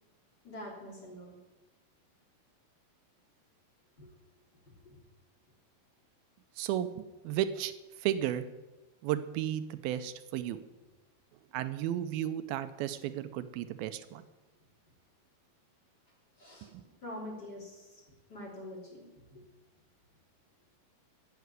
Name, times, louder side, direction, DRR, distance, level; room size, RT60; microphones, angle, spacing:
voice 1, 0.4-1.4 4.0-4.1 4.8-5.0 14.1-14.2 16.4-16.7 17.0-18.0 18.3-19.4, left 1 dB, 30° left, -2 dB, 3.3 m, -45 dB
voice 2, 6.6-7.7 8.0-8.5 9.0-10.6 11.5-14.3 16.7-16.8, right 11 dB, 85° right, 12 dB, 2.4 m, -34 dB
14.0 x 6.8 x 9.5 m, 1.1 s
omnidirectional pair, 4.3 m